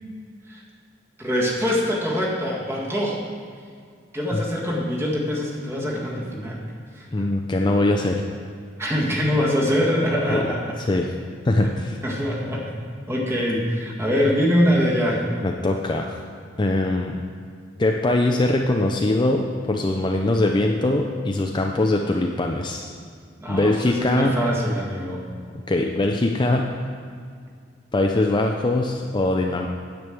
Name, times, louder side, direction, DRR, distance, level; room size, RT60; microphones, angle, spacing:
voice 1, 1.2-3.2 4.1-7.1 8.8-10.8 12.0-12.7 13.1-15.2 23.4-25.2, equal, 15° right, -4 dB, 1.8 m, -23 dB
voice 2, 7.1-8.2 10.3-10.4 10.8-11.1 11.4-12.0 15.4-16.2 16.6-17.2 17.8-22.9 23.5-24.4 25.7-26.8 27.9-29.7, left 2 dB, 25° left, 2 dB, 0.5 m, -22 dB
9.6 x 5.2 x 7.6 m, 2.1 s
head